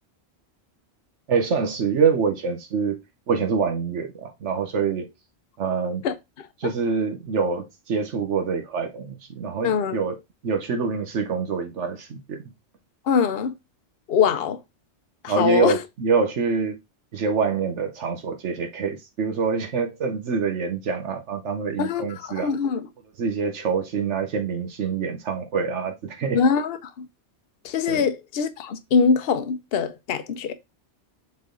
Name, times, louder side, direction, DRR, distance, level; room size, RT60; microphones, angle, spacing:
voice 1, 1.3-3.0 3.3-5.1 5.6-6.0 6.6-10.2 10.4-12.4 15.3-16.8 17.1-22.5 23.2-26.4 27.9-28.0, right 5 dB, 80° right, 1.3 m, -25 dB
voice 2, 9.6-10.0 13.1-13.5 14.1-14.6 15.2-15.8 21.8-22.9 26.3-27.1 27.6-30.5, left 6 dB, 60° left, 0.9 m, -23 dB
7.5 x 3.3 x 3.8 m
omnidirectional pair, 1.2 m